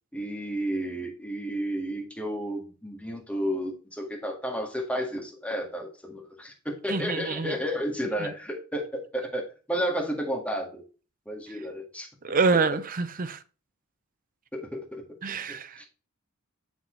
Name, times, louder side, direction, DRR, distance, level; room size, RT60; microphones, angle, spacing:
voice 1, 0.1-9.4 9.7-10.8 11.2-12.4 14.5-15.0 15.5-15.8, equal, 5° left, 1.8 m, -32 dB
voice 2, 6.9-7.5 12.2-13.4 15.2-15.8, right 4 dB, 40° right, 0.6 m, -26 dB
7.1 x 6.2 x 3.2 m
head